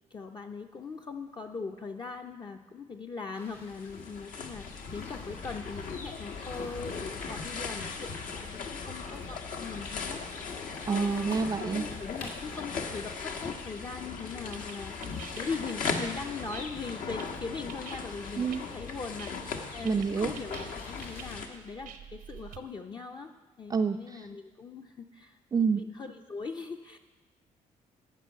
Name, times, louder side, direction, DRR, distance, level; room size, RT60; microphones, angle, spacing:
voice 1, 0.1-11.5 11.7-23.3 23.6-27.0, left 4 dB, 30° left, 3 dB, 0.5 m, -40 dB
sound 1, 3.3-21.3, left 2 dB, 90° left, 2.4 m, -51 dB
sound 2, 3.5-21.5, left 5 dB, 75° left, 1.3 m, -38 dB
voice 2, 10.9-11.9 18.4-18.6 19.8-20.3 23.7-24.3 25.5-25.8, right 5 dB, 25° right, 4 dB, 0.4 m, -28 dB
sound 3, 14.0-22.6, right 8 dB, 85° right, 0.8 m, -49 dB
11.0 x 6.0 x 8.1 m, 1.3 s
cardioid pair, 110°, 14 cm